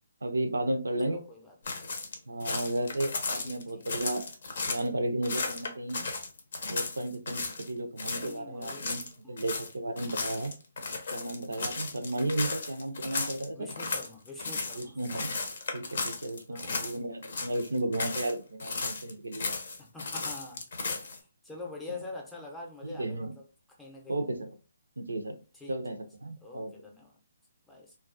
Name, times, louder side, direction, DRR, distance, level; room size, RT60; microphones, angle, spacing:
voice 1, 0.2-1.2 2.3-4.2 4.7-6.0 6.7-9.0 9.3-10.5 11.1-13.7 14.8-15.4 15.7-19.5 22.8-23.3 24.1-24.5 25.0-25.3 25.7-26.7, right 1 dB, 85° right, 6 dB, 0.4 m, -33 dB
voice 2, 1.0-2.0 3.4-3.9 8.1-8.9 9.2-9.4 13.1-15.0 16.5-16.9 19.8-20.6 21.0-24.2 25.5-25.8 26.4-27.2 27.7-27.9, left 3 dB, 5° left, 0 dB, 0.6 m, -46 dB
sound 1, 1.6-4.9 5.2-7.7 8.0-8.3 8.6-17.0 17.2-18.3 18.6-21.2, left 3 dB, 60° left, 0.6 m, -35 dB
2.3 x 2.2 x 2.5 m, 0.34 s
figure-of-eight pair, 145°, 0 cm